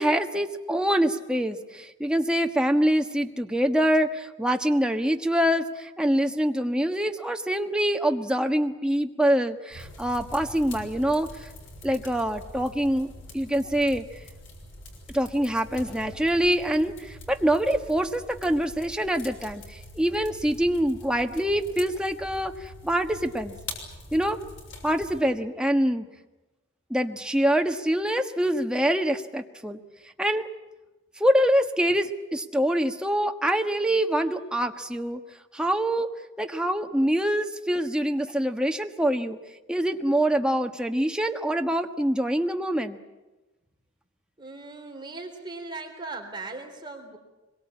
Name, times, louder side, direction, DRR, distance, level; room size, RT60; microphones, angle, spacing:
voice 1, 0.0-11.5 11.8-14.2 15.1-23.6 24.1-24.4 24.8-26.1 26.9-29.8 30.2-30.5 31.2-35.2 35.5-36.1 36.4-39.4 39.7-43.0, equal, 5° right, 5 dB, 1.4 m, -25 dB
sound 1, 9.7-25.2, left 1 dB, 70° left, 6.4 m, -44 dB
voice 2, 44.4-47.2, right 3 dB, 25° right, 2 dB, 3.8 m, -38 dB
25.0 x 22.5 x 8.5 m, 1.1 s
head